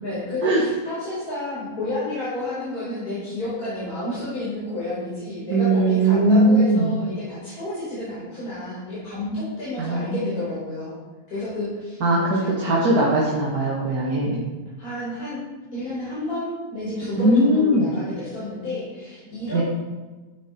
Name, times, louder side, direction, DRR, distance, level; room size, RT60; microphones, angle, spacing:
voice 1, 0.0-11.0 11.3-12.0 12.4-12.6 14.8-15.5 15.7-19.6, left 2 dB, 75° left, -10 dB, 5.4 m, -31 dB
voice 2, 5.5-6.9 9.8-10.3 12.0-14.4 17.2-17.9 19.5-19.6, right 1 dB, 80° right, -5 dB, 2.5 m, -19 dB
14.0 x 9.4 x 4.5 m, 1.2 s
omnidirectional pair, 1.6 m